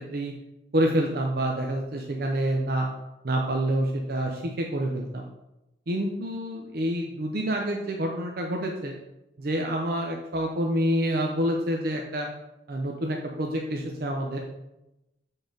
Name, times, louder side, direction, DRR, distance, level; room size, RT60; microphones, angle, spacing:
voice 1, 0.7-2.9 3.2-5.3 5.9-8.9 9.4-12.3 12.7-14.4, right 1 dB, 55° right, 1 dB, 0.6 m, -27 dB
7.0 x 3.9 x 3.8 m, 0.94 s
head